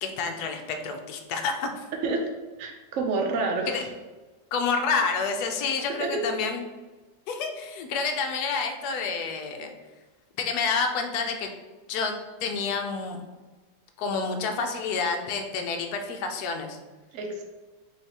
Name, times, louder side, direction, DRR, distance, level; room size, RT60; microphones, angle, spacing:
voice 1, 0.0-1.8 3.7-3.8 4.5-6.6 7.3-9.7 10.4-11.5 11.9-13.2 14.0-16.8, left 5 dB, 70° left, 5 dB, 1.0 m, -29 dB
voice 2, 2.6-3.8 6.0-6.1 17.1-17.4, right 3 dB, 70° right, 1 dB, 0.7 m, -28 dB
5.5 x 3.2 x 2.9 m, 1.2 s
omnidirectional pair, 2.0 m